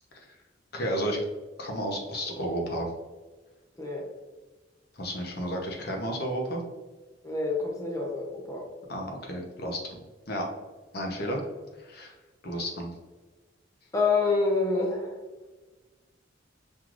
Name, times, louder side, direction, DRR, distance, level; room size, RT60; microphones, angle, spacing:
voice 1, 0.7-1.2 1.6-2.9 5.0-6.6 8.9-10.0 10.3-10.5 10.9-11.4 11.8-12.1 12.4-12.9, equal, 55° left, 0 dB, 0.9 m, -32 dB
voice 2, 3.7-4.1 7.2-8.7 13.9-15.2, left 3 dB, 15° left, -2 dB, 0.7 m, -27 dB
5.6 x 3.1 x 2.5 m, 1.3 s
head